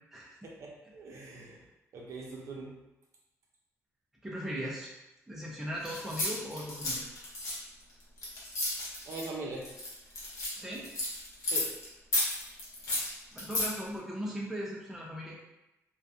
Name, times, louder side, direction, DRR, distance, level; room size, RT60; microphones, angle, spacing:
voice 1, 0.4-1.6 1.9-2.8 9.1-9.7 11.5-11.7, right 3 dB, 60° right, -2 dB, 0.6 m, -42 dB
voice 2, 4.2-4.9 5.3-7.0 10.6-10.9 13.3-15.4, equal, 5° right, -4 dB, 0.4 m, -38 dB
sound 1, 5.8-9.3 9.6-11.9 12.1-13.7, left 1 dB, 70° left, 0.7 m, -33 dB
2.3 x 2.2 x 2.6 m, 0.95 s
cardioid pair, 165°, 6 cm